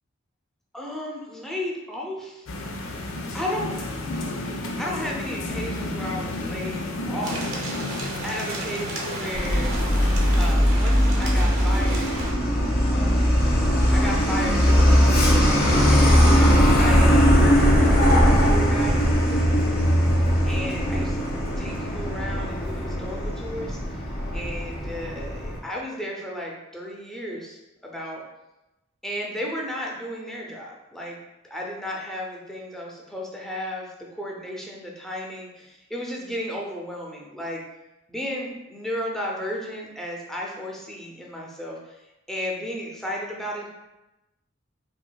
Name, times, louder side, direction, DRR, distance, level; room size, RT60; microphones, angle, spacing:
voice 1, 0.7-2.5 3.3-7.6 8.2-9.7 10.4-12.1 12.9-13.5 13.9-16.5 16.7-19.6 20.5-21.2 21.6-24.0 24.3-28.2 29.0-31.2 31.4-37.6 38.1-42.0 42.3-43.7, equal, ahead, -3 dB, 0.6 m, -34 dB
sound 1, 2.5-10.6, left 1 dB, 90° left, 0.5 m, -32 dB
sound 2, 7.2-12.3, right 1 dB, 90° right, 0.8 m, -34 dB
Truck, 9.3-25.6, equal, 50° left, 1.1 m, -20 dB
5.3 x 2.5 x 2.3 m, 0.97 s
head